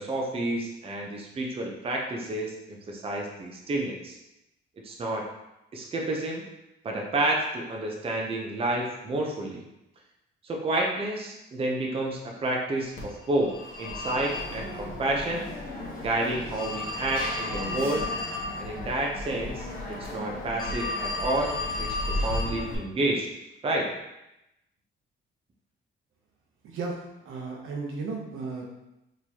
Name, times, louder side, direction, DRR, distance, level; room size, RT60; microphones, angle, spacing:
voice 1, 0.0-4.2 4.8-5.2 5.7-6.4 6.8-9.6 10.4-15.5 16.0-18.1 18.5-23.3 23.6-23.9, right 1 dB, 25° right, 0 dB, 0.6 m, -30 dB
Telephone, 13.0-22.8, left 2 dB, 40° left, 1.0 m, -33 dB
voice 2, 26.6-27.0 27.2-28.7, right 4 dB, 85° right, 0 dB, 0.8 m, -34 dB
4.3 x 3.0 x 2.8 m, 0.89 s
cardioid pair, 145°, 21 cm